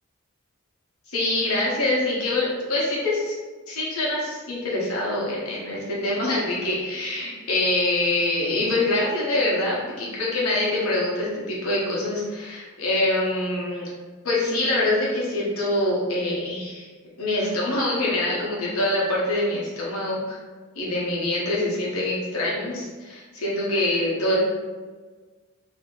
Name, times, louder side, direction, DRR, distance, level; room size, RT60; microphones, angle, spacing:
voice 1, 1.1-3.3 3.7-13.8 14.2-16.9 17.2-20.4 20.7-24.4, left 2 dB, 85° left, -5 dB, 1.1 m, -25 dB
2.9 x 2.7 x 3.7 m, 1.4 s
head